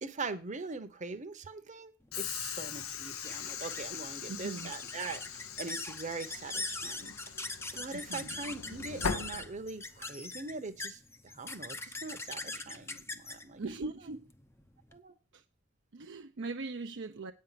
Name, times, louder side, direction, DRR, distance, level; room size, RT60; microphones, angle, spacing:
voice 1, 0.0-7.1 7.7-13.9 14.9-15.1, right 4 dB, 35° right, 1.0 m, -42 dB
Train / Sliding door, 2.1-10.1, left 7 dB, 80° left, 0.8 m, -41 dB
sound 1, 2.1-15.0, left 2 dB, 10° left, 0.7 m, -42 dB
voice 2, 4.3-4.7 8.1-8.3 13.6-14.3 15.3-15.4 15.9-17.3, right 3 dB, 60° right, 0.7 m, -40 dB
8.8 x 5.5 x 7.4 m
head